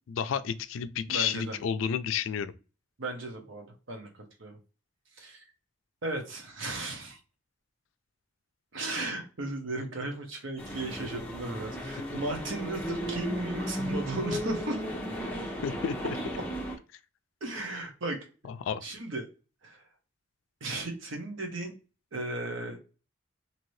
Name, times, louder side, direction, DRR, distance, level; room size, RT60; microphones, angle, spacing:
voice 1, 0.1-2.5 15.6-16.1 18.5-18.8, left 7 dB, 85° left, 0.3 m, -31 dB
voice 2, 1.1-1.6 3.0-4.6 5.2-5.4 6.0-7.2 8.7-14.8 16.0-16.1 17.4-18.2 18.8-19.3 19.6-19.8 20.6-21.7 22.1-22.8, right 2 dB, 80° right, 0.9 m, -35 dB
sound 1, 10.6-16.8, equal, 10° left, 0.6 m, -35 dB
2.8 x 2.7 x 3.1 m
head